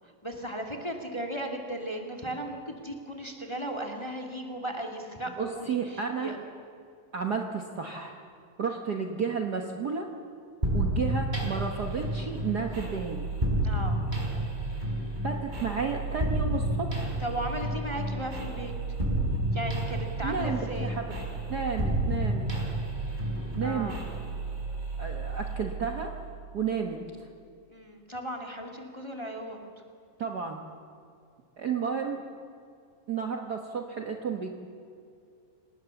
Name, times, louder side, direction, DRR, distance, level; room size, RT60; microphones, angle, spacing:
voice 1, 0.0-6.4 13.6-14.0 17.2-18.7 19.5-20.9 23.6-24.0 27.7-29.6, right 1 dB, 10° left, 2 dB, 1.9 m, -36 dB
voice 2, 5.4-6.4 7.1-8.1 8.6-10.1 10.7-13.3 15.2-17.1 20.2-21.1 21.5-22.5 23.6-24.0 25.0-26.1 26.5-27.0 30.2-30.6 31.6-32.2 33.1-34.5, right 6 dB, 75° right, 3 dB, 0.9 m, -32 dB
sound 1, 10.6-26.3, right 1 dB, 10° right, 4.7 m, -31 dB
28.5 x 19.0 x 7.2 m, 2.5 s
omnidirectional pair, 4.0 m